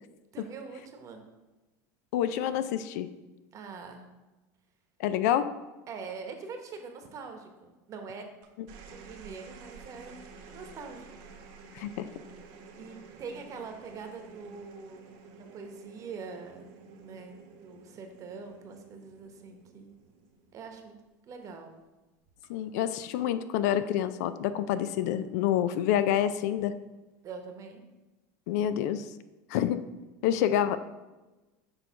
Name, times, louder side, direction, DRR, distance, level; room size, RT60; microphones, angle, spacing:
voice 1, 0.3-1.2 3.5-4.1 5.9-8.3 8.9-11.1 12.8-15.2 15.5-16.7 17.0-20.0 20.5-21.0 21.2-21.8 27.2-27.9, right 5 dB, 40° right, 5 dB, 1.0 m, -43 dB
voice 2, 2.1-3.1 5.0-5.5 11.7-12.1 22.5-26.7 28.5-29.0 29.5-29.8 30.2-30.8, left 10 dB, 75° left, 13 dB, 0.4 m, -27 dB
sound 1, 8.4-21.0 22.3-22.7, right 4 dB, 60° right, 1.0 m, -51 dB
6.4 x 3.1 x 5.6 m, 1.1 s
supercardioid pair, 120°, 9 cm